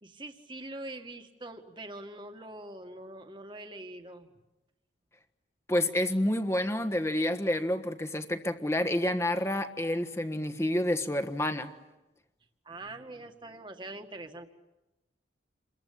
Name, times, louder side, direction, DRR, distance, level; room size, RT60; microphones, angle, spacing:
voice 1, 0.0-4.3 12.6-14.5, right 2 dB, 25° right, 5 dB, 1.9 m, -43 dB
voice 2, 5.7-11.7, left 1 dB, 15° left, 9 dB, 1.4 m, -29 dB
29.5 x 22.5 x 8.6 m, 1.0 s
head